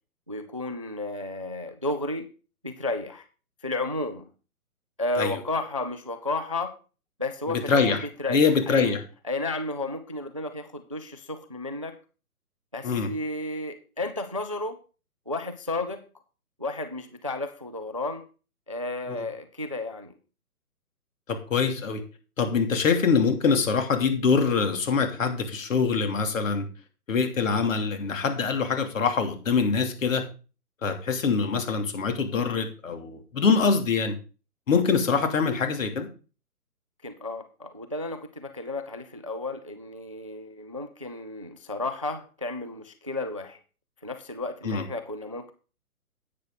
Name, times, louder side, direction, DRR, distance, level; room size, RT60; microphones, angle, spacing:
voice 1, 0.3-2.3 2.6-3.2 3.6-4.3 5.0-6.7 7.2-9.0 9.2-12.0 12.7-14.8 15.3-16.0 16.6-18.2 18.7-20.1 37.0-43.6 44.0-45.5, left 2 dB, 25° right, 10 dB, 0.4 m, -32 dB
voice 2, 7.5-8.0 8.3-9.0 12.8-13.1 21.3-22.0 22.4-26.6 27.1-30.2 30.8-34.1 34.7-36.1 44.6-44.8, left 5 dB, 60° left, 5 dB, 2.9 m, -24 dB
10.0 x 8.6 x 3.9 m, 0.35 s
figure-of-eight pair, 140°, 45 cm